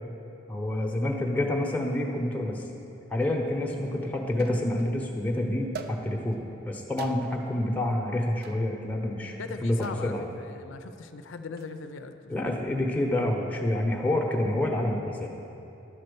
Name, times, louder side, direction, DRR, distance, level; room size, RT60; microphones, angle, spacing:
voice 1, 0.5-2.6 3.1-6.4 6.7-9.4 9.6-9.8 10.0-10.3 12.3-15.3, left 1 dB, 10° left, -1 dB, 0.8 m, -28 dB
sound 1, 3.2-3.3 4.4-5.0 5.7-6.4 7.0-7.5 8.4-8.7 9.8-10.2 11.4-11.8, right 5 dB, 55° right, 0.4 m, -43 dB
voice 2, 9.4-12.1 12.4-12.5, left 4 dB, 85° left, 8 dB, 0.5 m, -39 dB
11.0 x 4.3 x 6.8 m, 2.9 s
head